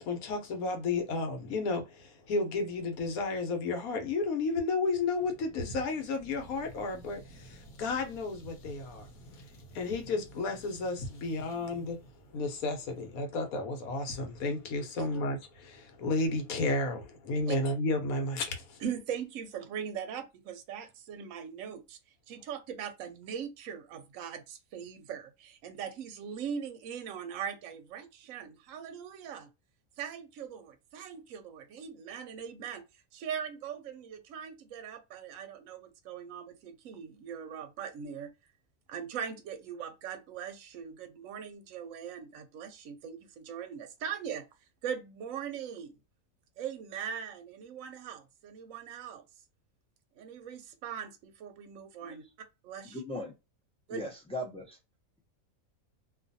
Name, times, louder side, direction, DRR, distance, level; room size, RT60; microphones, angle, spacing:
voice 1, 0.0-9.1 9.4-9.5 9.7-12.0 12.3-18.8, left 3 dB, 80° left, 1.2 m, -32 dB
sound 1, 5.2-13.2, right 1 dB, 60° left, 1.1 m, -53 dB
voice 2, 18.8-22.0 22.3-29.5 30.0-32.8 33.1-38.3 38.9-44.5 44.8-45.9 46.6-49.2 50.1-52.2 52.6-53.0 53.9-54.0, right 8 dB, 70° right, 0.9 m, -40 dB
voice 3, 52.8-53.3 53.9-54.8, left 1 dB, 5° left, 0.4 m, -38 dB
2.5 x 2.4 x 2.6 m
omnidirectional pair, 1.5 m